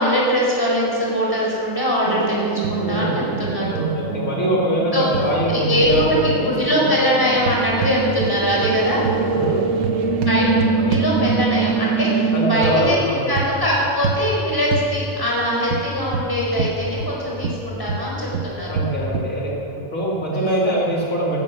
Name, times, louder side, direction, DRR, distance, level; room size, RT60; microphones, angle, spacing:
voice 1, 0.0-2.4 2.7-3.7 4.9-5.1 5.5-9.0 10.2-18.7 20.3-20.6, equal, 15° left, -4 dB, 4.7 m, -22 dB
sound 1, 2.0-12.6, right 5 dB, 65° right, 1.5 m, -24 dB
sound 2, 2.6-3.1 3.4-3.9 5.1-6.2 7.4-8.4 8.6-11.7 12.6-12.8 13.4-13.7 14.0-14.3 14.7-14.9 15.7-17.2 17.4-19.4, right 5 dB, 90° right, 1.4 m, -26 dB
voice 2, 2.8-3.2 3.7-6.9 9.3-9.6 12.3-13.3 18.7-21.4, right 1 dB, 70° left, -5 dB, 2.9 m, -23 dB
16.0 x 13.5 x 6.1 m, 2.8 s
omnidirectional pair, 1.5 m